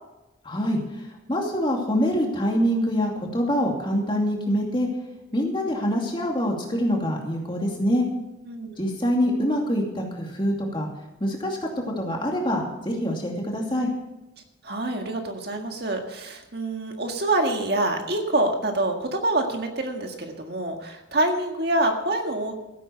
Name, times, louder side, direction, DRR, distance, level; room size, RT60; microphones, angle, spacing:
voice 1, 0.4-4.9 5.3-8.1 8.8-10.9 11.2-11.6 12.0-13.9, equal, 25° left, 0 dB, 2.5 m, -25 dB
voice 2, 8.5-8.8 14.6-22.5, right 2 dB, 55° right, 3 dB, 1.8 m, -26 dB
15.5 x 8.6 x 6.9 m, 0.98 s
head